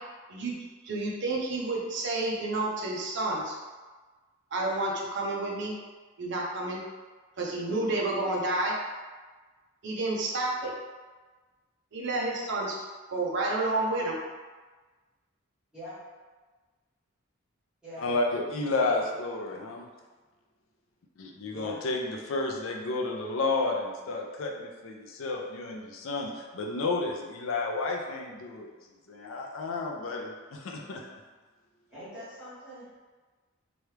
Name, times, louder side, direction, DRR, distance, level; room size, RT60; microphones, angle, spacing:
voice 1, 0.8-3.6 4.5-5.7 6.2-6.8 7.4-8.7 9.8-10.7 11.9-12.8 13.1-14.2, right 2 dB, 60° right, -2 dB, 0.6 m, -30 dB
voice 2, 18.0-19.9 21.2-28.7 29.1-31.1, left 3 dB, 70° left, 1 dB, 0.5 m, -31 dB
voice 3, 18.7-19.1 21.5-21.8 31.9-33.0, equal, 5° right, -13 dB, 1.4 m, -43 dB
3.0 x 2.3 x 3.2 m, 1.3 s
head